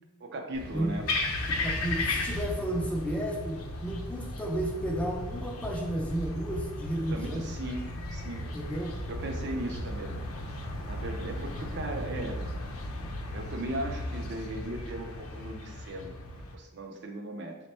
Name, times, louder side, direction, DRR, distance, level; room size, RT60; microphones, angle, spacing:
voice 1, 0.2-1.1 7.1-7.8 8.1-8.4 9.1-10.2 10.8-12.4 13.3-16.1 16.5-17.6, right 1 dB, 55° right, 3 dB, 0.5 m, -37 dB
sound 1, 0.5-16.6, left 2 dB, 90° left, 0.5 m, -35 dB
voice 2, 1.6-7.5 8.4-8.9, right 1 dB, 5° left, -1 dB, 0.4 m, -32 dB
4.1 x 2.1 x 4.2 m, 1.1 s
head